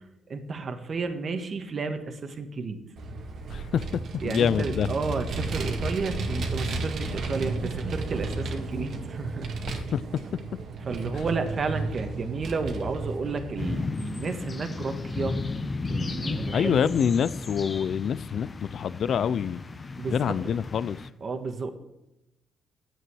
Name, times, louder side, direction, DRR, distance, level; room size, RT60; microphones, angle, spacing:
voice 1, 0.3-2.8 4.2-9.5 10.9-15.4 15.9-16.9 20.0-20.3 21.2-21.7, right 4 dB, 45° right, 1.5 m, -32 dB
Vehicle, 3.0-13.9, right 3 dB, 65° right, 1.7 m, -33 dB
voice 2, 3.5-3.8 4.2-4.9 9.7-10.0 16.5-19.6 20.1-21.0, left 8 dB, 60° left, 0.4 m, -26 dB
sound 1, 13.6-21.1, left 3 dB, 30° left, 0.9 m, -34 dB
10.0 x 7.7 x 6.2 m
cardioid pair, 90°, 0 cm